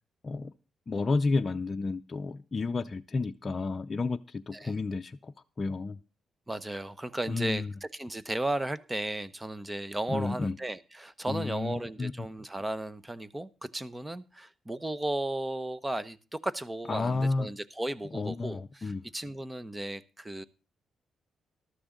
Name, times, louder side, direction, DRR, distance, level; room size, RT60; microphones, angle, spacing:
voice 1, 0.9-5.3 5.6-6.0 7.3-7.7 10.1-10.5 11.3-12.3 16.9-17.5 18.1-19.0, left 3 dB, 35° left, 0.6 m, -31 dB
voice 2, 6.5-20.4, right 1 dB, 15° right, 0.9 m, -35 dB
14.0 x 12.5 x 3.8 m
cardioid pair, 85°, 0 cm